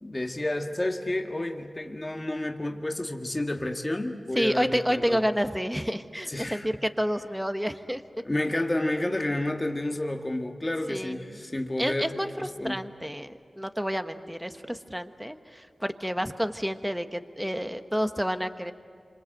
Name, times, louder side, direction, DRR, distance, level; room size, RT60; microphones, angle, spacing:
voice 1, 0.0-5.3 6.3-6.7 8.2-12.8, left 1 dB, 25° left, 3 dB, 1.8 m, -30 dB
voice 2, 4.3-8.0 10.9-11.3 11.8-18.7, equal, 5° right, 8 dB, 1.2 m, -29 dB
27.0 x 26.0 x 7.8 m, 2.2 s
cardioid pair, 55°, 0 cm